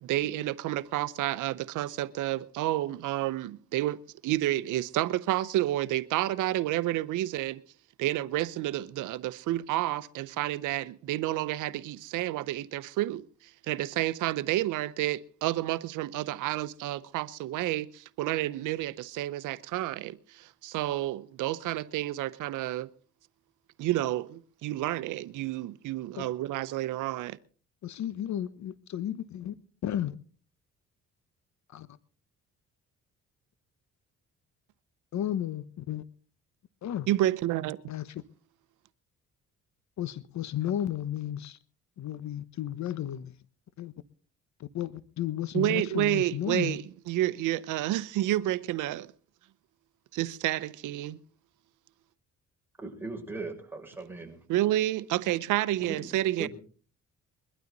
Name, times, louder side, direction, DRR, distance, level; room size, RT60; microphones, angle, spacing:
voice 1, 0.0-4.0 4.2-7.6 8.0-22.9 23.8-27.4 37.1-37.8 45.5-49.1 50.1-51.2 54.5-56.5, right 15 dB, 90° right, 0.8 m, -30 dB
voice 2, 27.8-29.5 29.8-30.1 31.7-31.9 35.1-36.0 36.8-37.1 37.9-38.2 40.0-41.6 42.0-43.3 43.8-43.9 44.6-46.8, left 11 dB, 65° left, 1.1 m, -33 dB
voice 3, 52.8-54.4 55.9-56.0 56.4-56.5, right 3 dB, 5° right, 6.3 m, -38 dB
22.5 x 12.5 x 4.0 m
cardioid pair, 90°, 30 cm